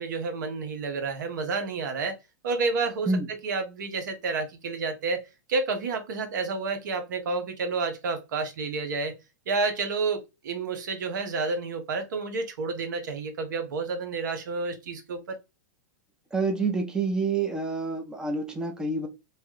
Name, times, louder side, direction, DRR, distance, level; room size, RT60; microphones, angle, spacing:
voice 1, 0.0-2.2 2.4-5.2 5.5-9.1 9.5-15.4, right 4 dB, 75° right, 0.8 m, -30 dB
voice 2, 16.3-19.1, right 3 dB, 5° right, 0.6 m, -27 dB
3.0 x 2.3 x 3.0 m
hypercardioid pair, 130°, 10 cm